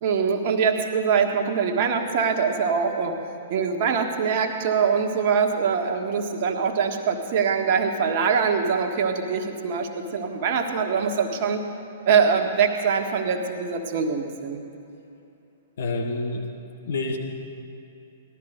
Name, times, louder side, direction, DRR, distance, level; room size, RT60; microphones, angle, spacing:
voice 1, 0.0-3.1 3.5-11.6 12.0-14.6, right 6 dB, 45° right, 4 dB, 1.5 m, -23 dB
voice 2, 15.8-16.5 16.9-17.2, left 3 dB, 65° left, 3 dB, 1.6 m, -27 dB
18.0 x 12.5 x 5.1 m, 2.7 s
figure-of-eight pair, 115°, 0 cm